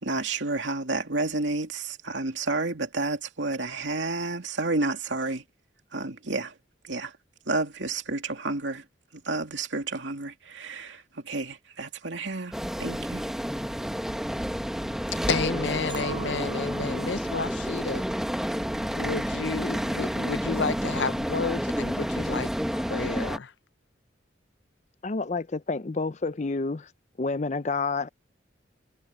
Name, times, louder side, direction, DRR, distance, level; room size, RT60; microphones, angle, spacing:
voice 1, 0.0-5.4 5.9-6.5 6.9-7.1 7.5-8.8 9.2-12.5 12.8-13.2, right 3 dB, 80° right, 2.7 m, -30 dB
sound 1, 12.5-23.4, equal, 5° right, 1.1 m, -30 dB
voice 2, 15.3-18.0 18.9-23.5, left 4 dB, 75° left, 0.7 m, -31 dB
Chink clink, 15.9-20.2 20.7-21.1, right 2 dB, 25° right, 4.9 m, -44 dB
voice 3, 25.0-26.9 27.2-28.1, left 3 dB, 40° left, 0.5 m, -29 dB
head